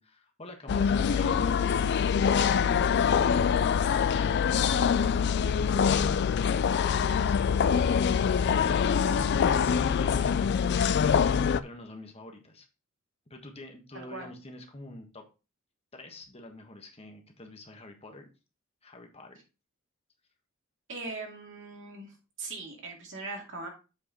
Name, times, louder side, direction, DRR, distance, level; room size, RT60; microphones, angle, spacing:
voice 1, 0.0-5.7 7.1-10.9 11.6-12.7 13.3-15.3 15.9-18.3 18.8-19.4, left 1 dB, 30° left, 4 dB, 1.4 m, -46 dB
sound 1, 0.7-11.6, left 7 dB, 50° left, 0.3 m, -24 dB
voice 2, 1.3-1.6 13.9-14.3 20.9-23.7, right 3 dB, 60° right, 1 dB, 2.5 m, -40 dB
7.8 x 4.6 x 4.4 m, 0.31 s
head